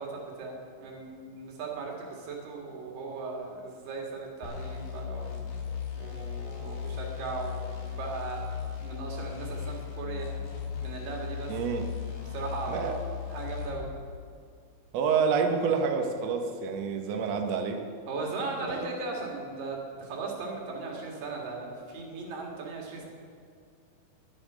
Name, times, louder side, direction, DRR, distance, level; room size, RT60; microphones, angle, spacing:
voice 1, 0.0-5.4 6.0-8.4 8.8-10.3 10.8-11.5 12.3-13.0 13.3-13.9 18.1-23.1, right 3 dB, 85° right, 0 dB, 3.7 m, -37 dB
sound 1, 4.4-13.9, left 7 dB, 85° left, 3.5 m, -37 dB
voice 2, 11.5-11.9 12.7-13.0 14.9-17.8 18.7-19.0, right 6 dB, 65° right, 4 dB, 1.8 m, -28 dB
12.0 x 10.5 x 6.3 m, 2.2 s
omnidirectional pair, 3.9 m